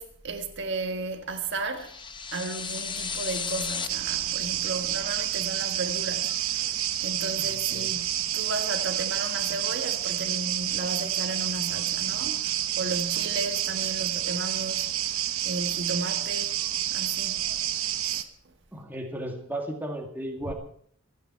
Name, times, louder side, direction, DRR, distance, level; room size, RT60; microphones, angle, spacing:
voice 1, 0.0-1.9 2.3-6.7 7.0-14.9 15.4-16.6 16.9-17.4 18.0-18.3 20.4-20.5, right 3 dB, 60° right, 1.5 m, -34 dB
sound 1, 1.8-3.9, left 5 dB, 25° left, 0.8 m, -33 dB
sound 2, 3.9-18.2, right 11 dB, 85° right, 1.0 m, -29 dB
voice 2, 7.4-7.9 18.7-20.5, right 1 dB, 10° right, 2.2 m, -35 dB
27.0 x 9.4 x 4.6 m
head